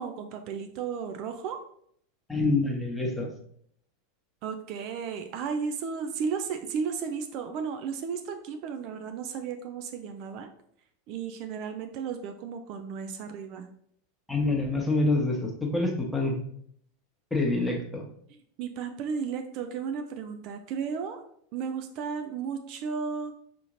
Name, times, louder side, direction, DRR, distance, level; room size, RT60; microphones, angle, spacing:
voice 1, 0.0-1.6 4.4-10.5 11.1-13.7 18.6-21.2 21.5-23.3, right 6 dB, 50° right, 6 dB, 0.4 m, -34 dB
voice 2, 2.3-3.3 14.3-16.4 17.3-18.0, left 2 dB, 10° left, 0 dB, 1.0 m, -26 dB
4.8 x 3.0 x 2.5 m, 0.66 s
hypercardioid pair, 90°, 0 cm